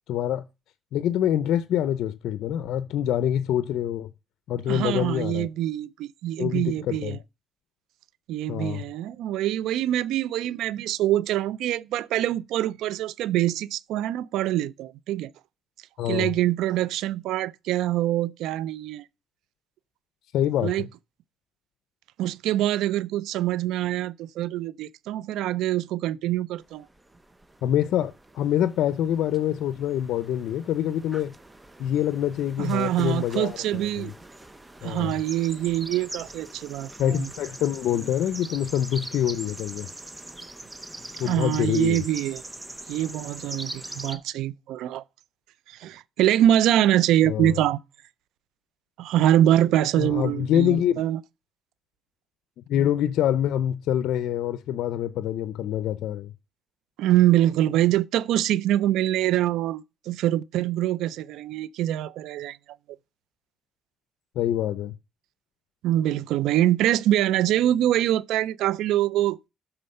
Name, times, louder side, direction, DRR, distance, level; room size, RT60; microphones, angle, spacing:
voice 1, 0.1-0.4 0.9-4.1 4.5-5.5 6.4-7.2 8.5-8.8 16.0-16.3 20.3-20.9 27.6-31.3 31.8-34.1 34.8-35.2 37.0-39.9 41.2-42.0 47.2-47.6 50.0-51.0 52.7-56.3 64.4-64.9, left 10 dB, 85° left, 0.5 m, -25 dB
voice 2, 4.7-7.2 8.3-15.3 16.0-19.0 20.6-20.9 22.2-26.9 32.6-34.1 34.8-37.3 41.2-42.4 42.9-45.0 45.7-47.8 49.0-51.2 57.0-62.6 65.8-69.4, right 13 dB, 90° right, 0.4 m, -24 dB
sound 1, 26.7-44.2, right 2 dB, 15° right, 0.9 m, -42 dB
13.0 x 4.3 x 5.4 m
cardioid pair, 90°, 0 cm